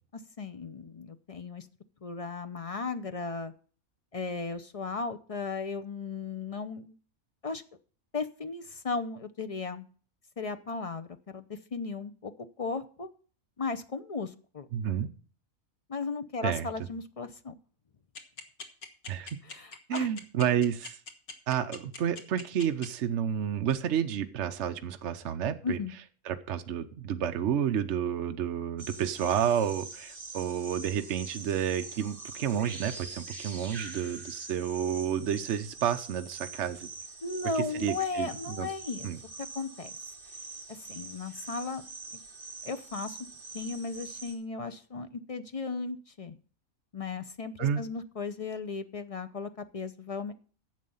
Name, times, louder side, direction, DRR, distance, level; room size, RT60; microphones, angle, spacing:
voice 1, 0.4-1.7 2.0-3.5 4.1-7.0 7.4-7.6 8.1-9.8 10.4-12.3 12.6-13.1 13.6-14.7 15.9-17.5 19.5-20.1 25.6-25.9 37.2-39.1 39.4-39.9 40.7-41.8 42.6-43.2 43.5-46.4 46.9-50.3, left 4 dB, 45° left, 10 dB, 0.4 m, -36 dB
voice 2, 14.7-15.1 16.4-16.7 19.1-19.3 19.9-21.0 21.5-25.8 26.2-36.9 37.6-38.7 39.0-39.2 47.6-47.8, right 9 dB, 60° right, 7 dB, 1.0 m, -30 dB
sound 1, 18.2-22.9, left 4 dB, 85° left, 1.9 m, -41 dB
sound 2, 28.8-44.3, right 3 dB, 35° right, 2.6 m, -44 dB
10.5 x 7.5 x 5.4 m, 0.41 s
omnidirectional pair, 1.5 m